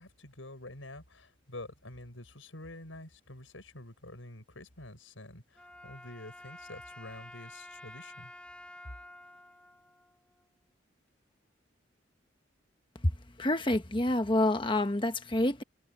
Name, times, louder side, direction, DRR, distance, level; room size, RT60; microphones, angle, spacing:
voice 1, 0.0-8.3, left 1 dB, 85° left, 6.1 m, -47 dB
Wind instrument woodwind instrument, 5.5-10.7, left 1 dB, 5° left, 5.1 m, -50 dB
voice 2, 13.4-15.6, left 1 dB, 25° left, 1.2 m, -27 dB
head